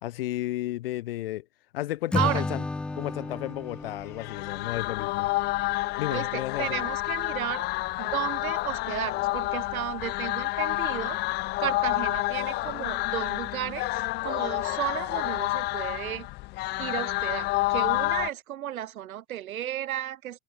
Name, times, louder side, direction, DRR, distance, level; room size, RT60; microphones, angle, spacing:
voice 1, 0.0-1.4 1.7-2.6 3.0-5.3 6.0-6.9, left 16 dB, 40° left, 1.0 m, -33 dB
Acoustic guitar / Strum, 2.1-5.4, left 2 dB, ahead, 0.8 m, -33 dB
sound 1, 4.0-18.3, left 21 dB, 20° left, 1.8 m, -29 dB
voice 2, 6.1-7.7 8.0-11.2 11.6-16.3 16.8-20.4, right 12 dB, 65° right, 5.8 m, -33 dB
supercardioid pair, 175°, 45 cm